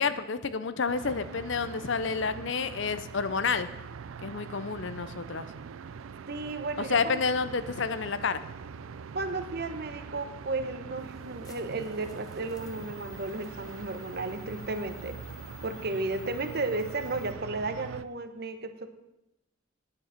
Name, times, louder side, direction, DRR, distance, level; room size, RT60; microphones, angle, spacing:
voice 1, 0.0-3.7 4.2-5.5 6.9-8.4, left 5 dB, 65° left, 13 dB, 0.7 m, -29 dB
sound 1, 0.9-18.0, right 6 dB, 85° right, 0.4 m, -43 dB
voice 2, 6.3-7.2 9.0-15.2 15.6-18.9, right 3 dB, 50° right, 9 dB, 1.0 m, -34 dB
sound 2, 11.0-17.3, left 8 dB, 20° left, 0.7 m, -53 dB
9.7 x 9.3 x 5.8 m, 0.89 s
head